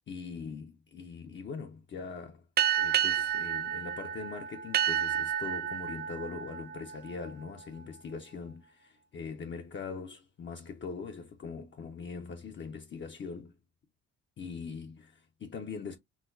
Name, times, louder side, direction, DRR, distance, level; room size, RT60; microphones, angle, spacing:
voice 1, 0.1-2.5 2.8-13.5 14.4-16.0, left 5 dB, 40° left, 0.6 m, -42 dB
sound 1, 2.6-7.7, right 10 dB, 35° right, 0.4 m, -31 dB
3.8 x 2.2 x 2.5 m
cardioid pair, 90°, 30 cm